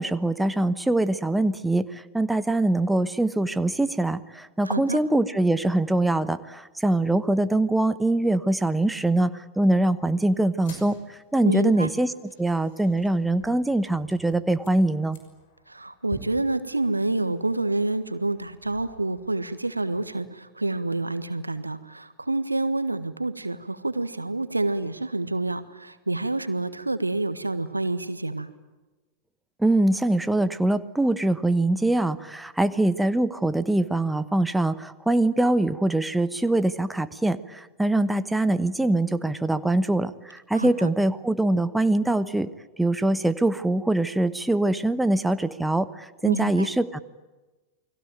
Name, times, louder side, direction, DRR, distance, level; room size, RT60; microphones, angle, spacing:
voice 1, 0.0-12.1 12.4-15.2 29.6-42.5 42.8-47.0, right 2 dB, 5° right, 12 dB, 1.1 m, -23 dB
voice 2, 4.6-5.0 11.4-11.9 15.7-28.5 40.5-40.9 46.2-46.7, right 2 dB, 85° right, 12 dB, 1.5 m, -28 dB
sound 1, 10.5-20.1, left 3 dB, 55° left, 6.1 m, -50 dB
29.5 x 22.0 x 9.0 m, 1.2 s
figure-of-eight pair, 90°, 0 cm